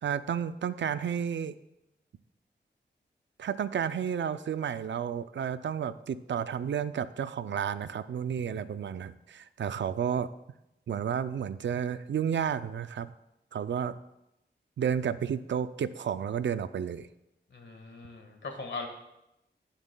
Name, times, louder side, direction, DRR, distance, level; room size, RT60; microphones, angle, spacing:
voice 1, 0.0-1.6 3.4-10.3 10.9-13.1 13.5-14.0 14.8-17.1, right 8 dB, 90° right, 13 dB, 0.4 m, -31 dB
voice 2, 17.5-18.9, left 4 dB, 80° left, 3 dB, 1.6 m, -40 dB
16.0 x 7.3 x 2.3 m, 0.89 s
wide cardioid pair, 115°, 19 cm